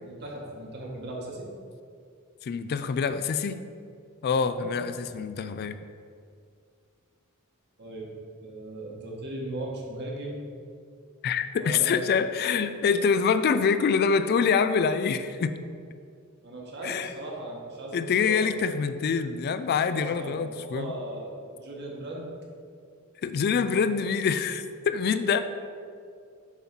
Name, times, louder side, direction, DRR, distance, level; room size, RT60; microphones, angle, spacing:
voice 1, 0.0-1.5 4.5-4.7 7.8-8.1 8.4-10.4 11.6-12.1 16.4-18.4 19.8-22.3, right 1 dB, 50° right, -2 dB, 1.5 m, -37 dB
voice 2, 2.4-3.6 4.2-5.8 11.2-15.6 16.8-17.1 17.9-20.9 23.2-25.4, left 6 dB, 45° left, 11 dB, 0.3 m, -25 dB
7.1 x 4.0 x 5.9 m, 2.3 s
head